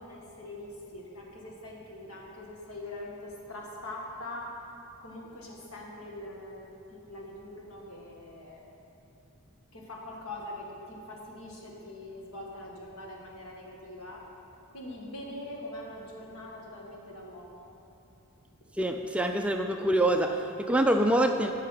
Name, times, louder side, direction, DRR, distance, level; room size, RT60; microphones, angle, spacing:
voice 1, 0.0-4.5 5.0-6.6 6.9-8.6 9.7-14.2 14.7-17.7, left 1 dB, 75° left, -2 dB, 1.9 m, -43 dB
voice 2, 18.8-21.5, right 1 dB, 5° right, 4 dB, 0.3 m, -25 dB
14.0 x 5.8 x 5.7 m, 2.7 s
head